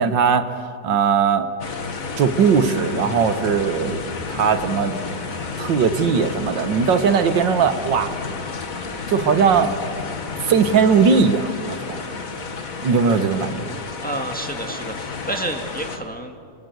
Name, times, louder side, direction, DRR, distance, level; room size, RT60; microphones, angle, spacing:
voice 1, 0.0-1.5 2.2-4.0 4.3-4.9 5.6-8.1 9.1-9.7 10.5-12.0 12.8-13.7, right 6 dB, 75° right, 9 dB, 1.9 m, -19 dB
sound 1, 1.6-16.0, left 4 dB, 50° left, 2.0 m, -31 dB
voice 2, 14.0-16.4, right 2 dB, 5° left, 3 dB, 1.7 m, -30 dB
29.5 x 23.5 x 8.0 m, 2.3 s
omnidirectional pair, 2.0 m